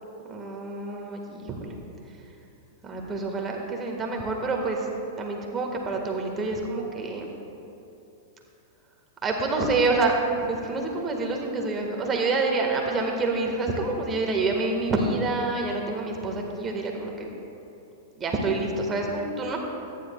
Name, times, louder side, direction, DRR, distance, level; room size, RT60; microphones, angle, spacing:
voice 1, 0.3-1.8 2.8-4.9 5.2-7.3 9.2-17.3 18.2-19.6, right 3 dB, 25° right, 1 dB, 1.7 m, -27 dB
24.5 x 10.5 x 2.4 m, 2.9 s
figure-of-eight pair, 100°, 0 cm